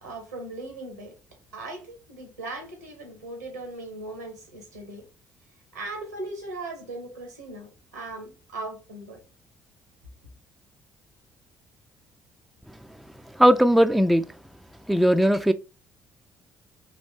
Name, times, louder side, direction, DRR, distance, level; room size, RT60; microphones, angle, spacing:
voice 1, 0.0-1.2 1.5-5.1 5.7-9.2, right 2 dB, 90° right, 1.0 m, -38 dB
voice 2, 13.3-14.3 14.9-15.5, equal, ahead, 0.3 m, -18 dB
4.0 x 3.0 x 3.3 m
figure-of-eight pair, 50°, 8 cm